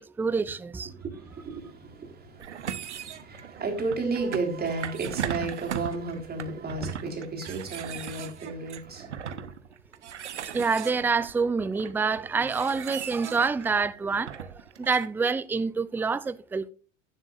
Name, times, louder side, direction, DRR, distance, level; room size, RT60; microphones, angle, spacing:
voice 1, 0.0-0.9 10.5-16.7, right 4 dB, 5° right, 0.5 m, -27 dB
voice 2, 1.0-9.5, right 3 dB, 25° right, 3.7 m, -33 dB
sound 1, 2.4-15.1, right 9 dB, 80° right, 0.9 m, -38 dB
17.0 x 7.3 x 2.5 m
figure-of-eight pair, 75°, 34 cm